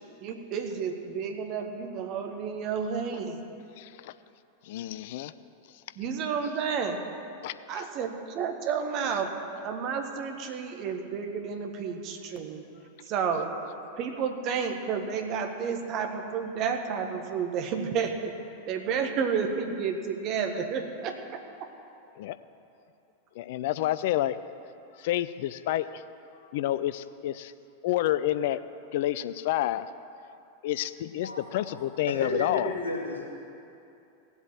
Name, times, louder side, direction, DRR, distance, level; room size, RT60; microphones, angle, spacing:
voice 1, 0.2-3.4 6.0-7.0 7.7-9.3 9.6-12.7 13.1-13.5 13.9-18.3 18.7-21.7, right 6 dB, 40° right, 5 dB, 1.5 m, -31 dB
voice 2, 3.8-4.1 4.6-5.3 7.4-7.9 22.2-22.4 23.4-24.4 25.0-26.1 26.5-27.5 27.8-28.6 28.9-29.9 30.6-32.7, left 13 dB, 50° left, 14 dB, 0.5 m, -29 dB
voice 3, 31.2-31.8 32.1-32.3 32.6-33.2, left 2 dB, 75° left, -3 dB, 3.1 m, -34 dB
17.0 x 8.1 x 7.4 m, 2.7 s
figure-of-eight pair, 90°, 0 cm